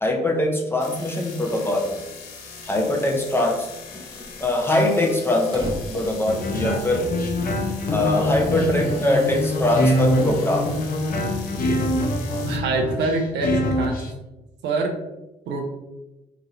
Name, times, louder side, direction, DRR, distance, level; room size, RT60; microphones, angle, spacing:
voice 1, 0.0-1.9 2.7-3.7 4.4-7.1 7.9-10.7, left 1 dB, 10° left, 1 dB, 0.7 m, -22 dB
sound 1, 0.8-12.6, left 5 dB, 85° left, 0.4 m, -41 dB
sound 2, 2.4-2.8 3.2-3.3 3.5-3.6 4.0-7.1, right 1 dB, 20° right, 0.8 m, -37 dB
sound 3, 6.3-14.1, left 1 dB, 50° left, 0.7 m, -24 dB
voice 2, 12.4-14.0 14.6-14.9 15.5-15.7, right 3 dB, 70° right, 3 dB, 0.5 m, -25 dB
2.9 x 2.7 x 2.5 m, 1.0 s
hypercardioid pair, 45°, 19 cm